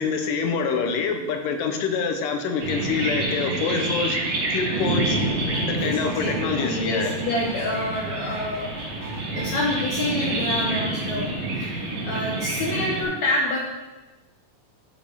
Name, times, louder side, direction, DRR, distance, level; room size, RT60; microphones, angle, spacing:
voice 1, 0.0-4.2 4.5-5.2 5.7-7.1, left 5 dB, 85° left, 5 dB, 2.5 m, -26 dB
sound 1, 2.6-13.0, right 2 dB, 90° right, 4.9 m, -28 dB
sound 2, 4.7-9.7, right 3 dB, 30° right, 3.8 m, -44 dB
voice 2, 5.8-8.7 9.3-11.3 11.6-13.6, left 1 dB, 65° left, -3 dB, 2.3 m, -27 dB
13.0 x 7.3 x 3.6 m, 1.1 s
omnidirectional pair, 3.8 m